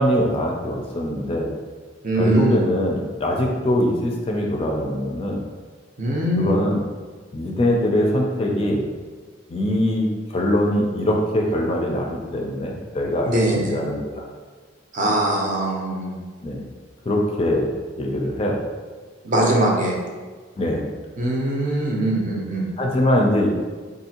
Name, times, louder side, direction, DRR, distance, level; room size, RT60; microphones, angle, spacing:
voice 1, 0.0-1.5 2.1-5.4 6.4-6.8 7.3-8.8 9.5-14.3 16.4-16.7 17.1-18.6 20.6-20.9 22.8-23.5, left 1 dB, 30° left, 0 dB, 0.4 m, -22 dB
voice 2, 2.0-2.6 6.0-6.5 13.2-13.8 14.9-16.2 19.2-20.0 21.2-22.6, right 1 dB, 45° right, -2 dB, 0.6 m, -22 dB
3.9 x 2.6 x 2.8 m, 1.4 s
head